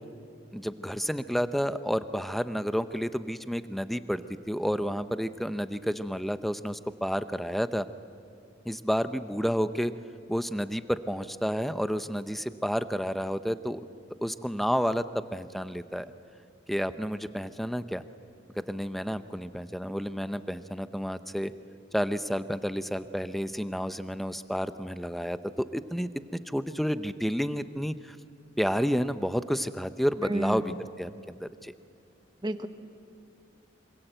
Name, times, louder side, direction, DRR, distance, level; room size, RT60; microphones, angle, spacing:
voice 1, 0.5-7.9 8.6-9.9 10.3-13.8 14.2-16.1 16.7-18.0 18.6-21.5 21.9-28.2 28.6-31.7, equal, ahead, 11 dB, 0.6 m, -30 dB
voice 2, 30.3-30.6 32.4-32.7, right 1 dB, 25° right, 9 dB, 1.1 m, -30 dB
26.0 x 26.0 x 8.0 m, 2.4 s
head